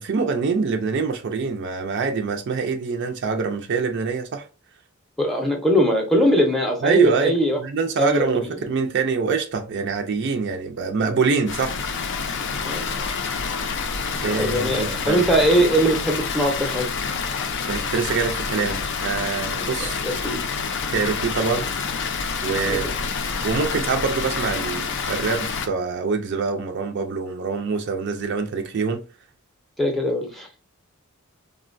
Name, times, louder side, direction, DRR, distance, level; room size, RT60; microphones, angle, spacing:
voice 1, 0.0-4.4 6.8-11.8 14.2-15.3 15.5-15.6 17.7-20.0 20.9-21.7 22.4-22.9 23.4-29.0, right 5 dB, 55° right, 0.4 m, -25 dB
voice 2, 5.2-7.6 8.0-8.5 12.6-12.8 14.3-16.9 20.0-20.5 22.7-22.8 29.8-30.5, equal, ahead, 0.6 m, -21 dB
Water, 11.5-25.7, left 5 dB, 55° left, 0.4 m, -27 dB
3.7 x 2.1 x 2.5 m
head